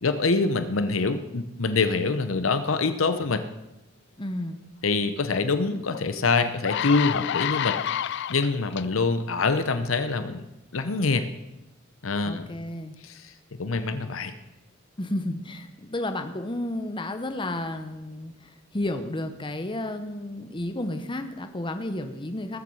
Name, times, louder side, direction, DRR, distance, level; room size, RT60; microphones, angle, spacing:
voice 1, 0.0-3.4 4.8-10.5 10.7-11.3 12.0-12.5 13.0-13.3 13.6-14.3, left 4 dB, 75° left, 10 dB, 0.8 m, -25 dB
voice 2, 4.2-4.6 12.2-12.9 15.0-22.6, left 1 dB, 25° left, 7 dB, 0.9 m, -32 dB
sound 1, 5.9-6.0 6.4-8.8 9.5-9.7, left 10 dB, 55° left, 0.3 m, -29 dB
20.0 x 7.6 x 5.5 m, 0.93 s
head